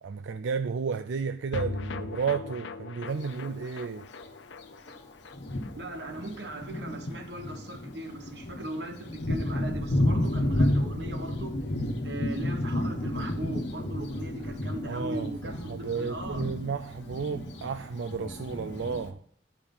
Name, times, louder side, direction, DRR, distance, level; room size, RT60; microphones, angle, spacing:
voice 1, 0.0-4.0 14.9-19.2, right 5 dB, 85° right, 0.4 m, -32 dB
sound 1, 1.5-8.0 8.2-8.3 8.6-8.7, left 3 dB, 90° left, 0.6 m, -40 dB
Thunder, 3.1-3.2 4.2-4.3 4.9-5.0 5.3-19.1, left 1 dB, 70° left, 1.2 m, -31 dB
voice 2, 5.8-11.6 12.0-16.5, right 1 dB, 65° right, 1.2 m, -38 dB
10.5 x 4.9 x 5.5 m
head